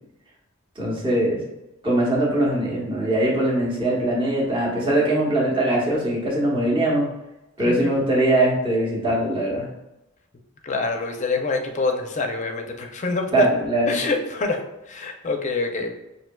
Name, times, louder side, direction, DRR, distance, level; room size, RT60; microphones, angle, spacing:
voice 1, 0.8-1.4 1.8-7.1 7.6-9.7 13.3-14.0, right 1 dB, 25° right, -5 dB, 0.9 m, -21 dB
voice 2, 10.6-13.5 13.9-14.6 14.9-15.9, left 3 dB, 35° left, 4 dB, 0.5 m, -25 dB
5.6 x 2.7 x 2.2 m, 0.94 s
head